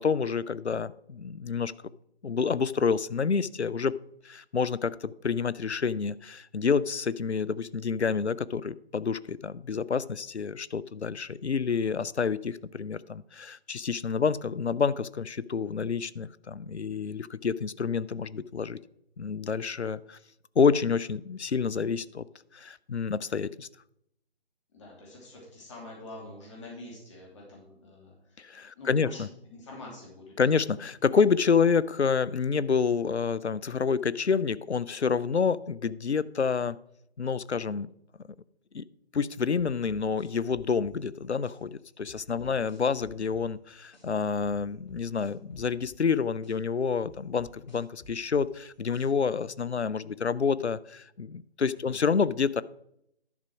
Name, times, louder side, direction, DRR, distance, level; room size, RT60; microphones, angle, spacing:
voice 1, 0.0-1.7 2.2-3.9 4.2-18.8 19.2-20.2 20.6-22.3 22.5-23.7 28.4-29.3 30.4-36.8 37.2-37.9 38.7-38.8 39.1-52.6, left 5 dB, 90° left, 18 dB, 0.5 m, -28 dB
voice 2, 24.7-28.5 28.7-30.6 42.3-42.6 51.7-52.0, left 2 dB, 30° left, -2 dB, 2.9 m, -46 dB
sound 1, 39.6-41.6 42.1-44.1 44.4-46.6 47.1-49.3, equal, 45° left, 2.2 m, -52 dB
11.0 x 6.2 x 4.6 m, 0.75 s
figure-of-eight pair, 150°, 32 cm